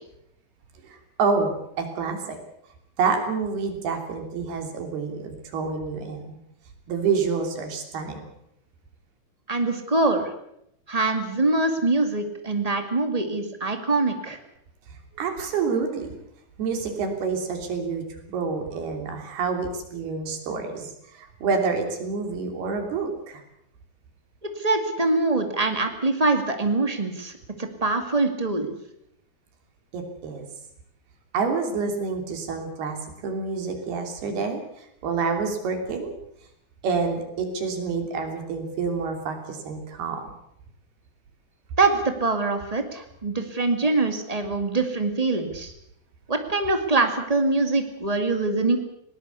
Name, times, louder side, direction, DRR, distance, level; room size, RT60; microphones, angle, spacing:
voice 1, 0.8-1.5 1.8-2.4 3.0-6.4 6.9-8.2 15.2-16.2 16.6-18.0 18.3-23.4 29.9-30.5 31.3-36.2 36.8-40.2, right 5 dB, 75° right, 5 dB, 5.1 m, -28 dB
voice 2, 9.5-10.3 10.9-14.4 24.6-27.3 27.6-28.7 41.8-45.7 46.3-48.8, right 3 dB, 35° right, 6 dB, 0.6 m, -24 dB
20.5 x 18.5 x 8.2 m, 0.76 s
omnidirectional pair, 4.6 m